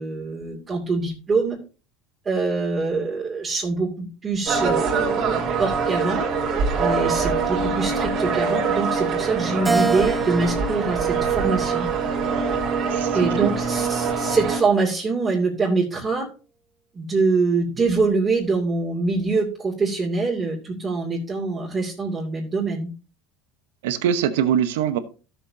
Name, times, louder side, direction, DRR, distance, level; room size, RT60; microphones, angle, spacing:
voice 1, 0.0-1.6 2.2-6.2 6.8-11.9 13.1-16.3 16.9-22.9, right 3 dB, 25° right, -5 dB, 2.5 m, -24 dB
sound 1, 4.5-14.6, right 5 dB, 50° right, 3.1 m, -24 dB
Keyboard (musical), 9.7-12.1 12.7-14.0, right 4 dB, 10° right, 0.9 m, -29 dB
voice 2, 12.9-13.3 23.8-25.0, right 9 dB, 85° right, 11 dB, 1.0 m, -22 dB
13.0 x 7.2 x 2.8 m, 0.35 s
supercardioid pair, 110°, 0 cm